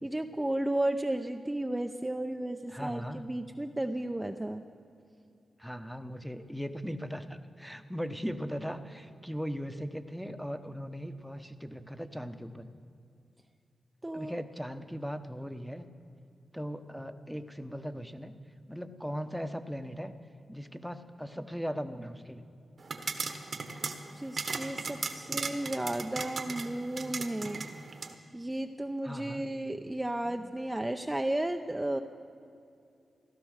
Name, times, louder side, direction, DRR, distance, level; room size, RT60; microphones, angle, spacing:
voice 1, 0.0-4.6 14.0-14.3 24.2-27.6 28.3-32.0, right 1 dB, 15° right, 5 dB, 0.7 m, -33 dB
voice 2, 2.7-3.2 5.6-12.7 14.1-15.8 16.5-18.3 18.7-20.1 20.5-22.4 25.0-25.2 29.0-29.4 30.2-30.5, equal, ahead, 9 dB, 1.1 m, -39 dB
sound 1, 22.8-28.1, right 4 dB, 55° right, 1.4 m, -37 dB
16.0 x 12.5 x 6.6 m, 2.5 s
cardioid pair, 50°, 0 cm